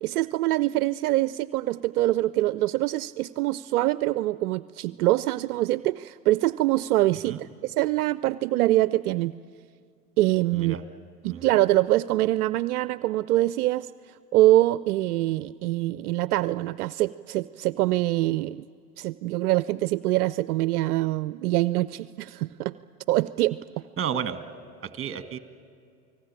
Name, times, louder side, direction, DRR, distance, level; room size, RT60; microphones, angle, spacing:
voice 1, 0.0-9.3 10.2-10.8 11.2-13.9 14.3-18.7 19.0-22.7 23.1-23.6, right 16 dB, 70° right, 17 dB, 0.6 m, -24 dB
voice 2, 24.0-24.4 24.8-25.4, right 8 dB, 30° right, 11 dB, 1.7 m, -31 dB
28.5 x 19.0 x 8.9 m, 2.2 s
hypercardioid pair, 80°, 46 cm